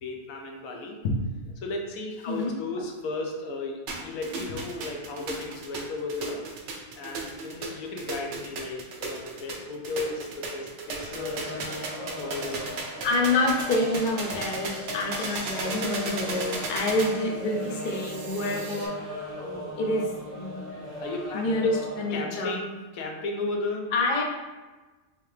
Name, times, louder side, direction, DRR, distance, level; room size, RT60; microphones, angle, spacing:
voice 1, 0.0-6.4 6.9-11.5 12.2-12.6 21.0-21.8 22.1-23.9, left 2 dB, 75° left, 1 dB, 1.0 m, -34 dB
sound 1, 3.9-18.9, right 3 dB, 65° right, 0.8 m, -36 dB
sound 2, 11.1-22.2, left 1 dB, 35° right, 0.7 m, -38 dB
voice 2, 13.0-19.2 19.8-20.6 21.3-22.5 23.9-24.2, left 2 dB, 55° left, 0 dB, 0.5 m, -27 dB
3.4 x 2.8 x 3.2 m, 1.2 s
omnidirectional pair, 1.5 m